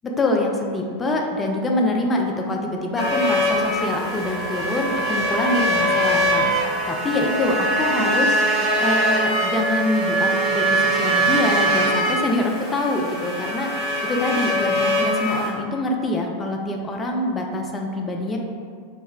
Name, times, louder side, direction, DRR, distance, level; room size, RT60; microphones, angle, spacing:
voice 1, 0.0-8.3 8.8-13.7 14.0-18.4, left 2 dB, 15° left, 1 dB, 0.3 m, -25 dB
sound 1, 3.0-15.5, right 1 dB, 5° right, 1.2 m, -22 dB
2.1 x 2.0 x 3.6 m, 2.1 s
figure-of-eight pair, 90°, 0 cm